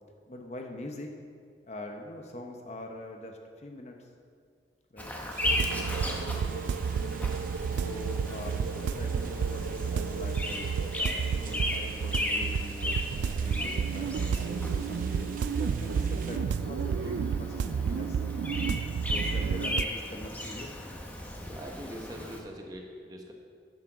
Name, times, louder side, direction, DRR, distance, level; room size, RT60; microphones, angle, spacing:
voice 1, 0.3-1.1 1.7-4.1 4.9-5.1 7.7-18.2 19.0-20.8, left 1 dB, 40° left, 2 dB, 0.9 m, -43 dB
Bird vocalization bird call bird song, 5.0-22.4, left 1 dB, 10° left, 1.0 m, -36 dB
sound 1, 5.3-16.4, right 6 dB, 50° right, 0.8 m, -50 dB
sound 2, 5.4-19.8, right 6 dB, 90° right, 0.3 m, -31 dB
voice 2, 21.4-23.3, equal, 20° right, 1 dB, 1.1 m, -43 dB
9.4 x 7.4 x 6.2 m, 2.1 s
head